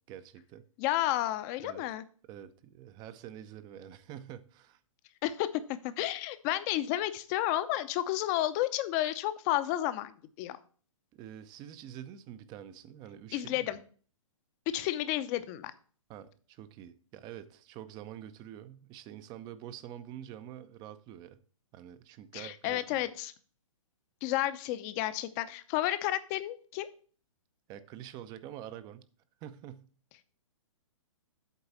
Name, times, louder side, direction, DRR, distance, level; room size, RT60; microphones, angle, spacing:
voice 1, 0.0-0.7 1.6-1.8 2.3-4.8 11.1-13.8 16.1-21.4 21.7-23.1 27.7-29.0 29.4-29.9, right 10 dB, 25° right, 0.6 m, -46 dB
voice 2, 0.8-2.0 5.2-10.1 10.4-10.6 13.3-13.8 14.7-15.7 22.3-23.3 24.2-26.9, left 14 dB, 30° left, 0.7 m, -31 dB
8.3 x 3.9 x 6.9 m
hypercardioid pair, 125°, 17 cm